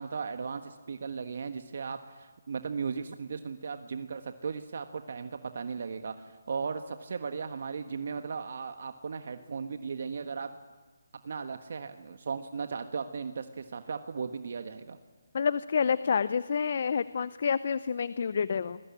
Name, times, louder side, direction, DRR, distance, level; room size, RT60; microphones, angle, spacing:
voice 1, 0.0-10.5 11.2-15.0, right 5 dB, 55° right, 8 dB, 1.4 m, -36 dB
voice 2, 15.3-18.8, left 6 dB, 50° left, 16 dB, 0.7 m, -28 dB
25.5 x 21.5 x 8.7 m, 1.4 s
figure-of-eight pair, 155°, 0 cm